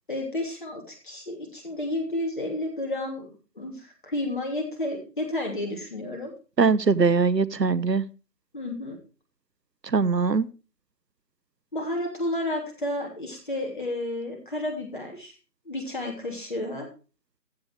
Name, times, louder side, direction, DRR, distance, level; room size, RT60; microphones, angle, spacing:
voice 1, 0.1-3.3 3.6-6.3 8.5-9.0 11.7-15.3 15.6-16.9, left 1 dB, 30° left, 3.0 m, -31 dB
voice 2, 6.6-8.0 9.9-10.5, right 4 dB, 90° right, 1.0 m, -21 dB
15.0 x 6.8 x 4.6 m
figure-of-eight pair, 170°, 48 cm